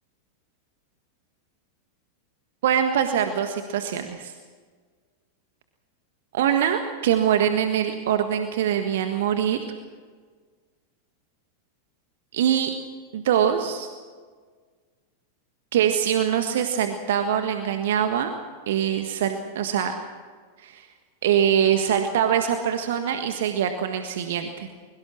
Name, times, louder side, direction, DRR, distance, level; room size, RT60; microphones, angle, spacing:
voice 1, 2.6-4.3 6.3-9.6 12.3-12.7 13.1-13.9 15.7-18.3 18.7-19.9 20.6-20.9 21.2-24.7, right 9 dB, 55° right, 7 dB, 1.6 m, -23 dB
23.5 x 23.0 x 6.3 m, 1.5 s
figure-of-eight pair, 90°, 0 cm